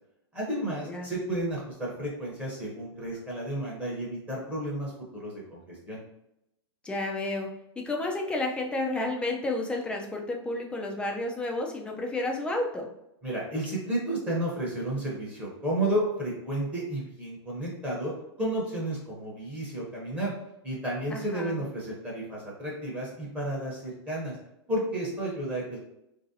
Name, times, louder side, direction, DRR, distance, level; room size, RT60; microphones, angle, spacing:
voice 1, 0.3-6.0 13.2-18.1 18.4-20.3 20.6-24.4 24.7-25.8, right 1 dB, 10° right, -5 dB, 0.8 m, -32 dB
voice 2, 6.8-7.5 7.8-12.9 21.1-21.6, left 2 dB, 5° left, 1 dB, 0.4 m, -31 dB
2.9 x 2.6 x 2.7 m, 0.84 s
hypercardioid pair, 140°, 14 cm